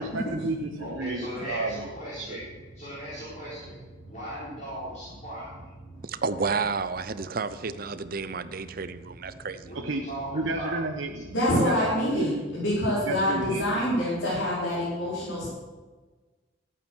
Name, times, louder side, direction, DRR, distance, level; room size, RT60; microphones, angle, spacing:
voice 1, 0.0-1.9 2.2-2.4 9.7-11.3 11.6-12.5 13.1-13.7, right 2 dB, 80° right, 1 dB, 1.0 m, -32 dB
voice 2, 0.8-2.4 2.7-3.7 4.1-5.5 9.6-10.7, equal, 40° left, -8 dB, 4.3 m, -37 dB
voice 3, 6.1-9.8, right 4 dB, 45° right, 13 dB, 0.6 m, -31 dB
voice 4, 11.3-15.5, equal, 70° left, -9 dB, 4.5 m, -26 dB
14.0 x 8.8 x 6.4 m, 1.3 s
head